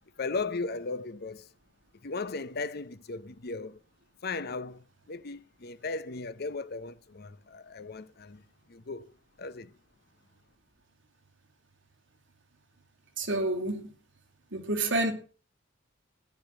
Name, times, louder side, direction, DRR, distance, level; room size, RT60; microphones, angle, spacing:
voice 1, 0.2-1.5 2.0-3.8 4.2-8.4 8.7-9.1 9.4-9.7, left 3 dB, 55° left, 0.8 m, -36 dB
voice 2, 13.2-13.9 14.5-15.1, right 2 dB, 75° right, 2.6 m, -29 dB
15.0 x 10.5 x 6.2 m
head